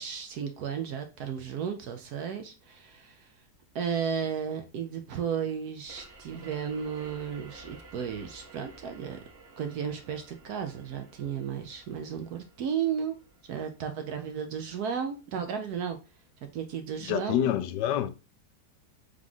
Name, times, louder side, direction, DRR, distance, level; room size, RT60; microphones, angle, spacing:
voice 1, 0.0-3.3 3.7-9.2 9.6-13.2 13.5-16.0 16.5-17.4, right 7 dB, 70° right, 1.0 m, -34 dB
sound 1, 5.9-15.2, right 3 dB, 45° right, 1.0 m, -53 dB
voice 2, 17.1-18.1, left 11 dB, 80° left, 1.2 m, -27 dB
3.6 x 3.2 x 3.7 m
omnidirectional pair, 1.9 m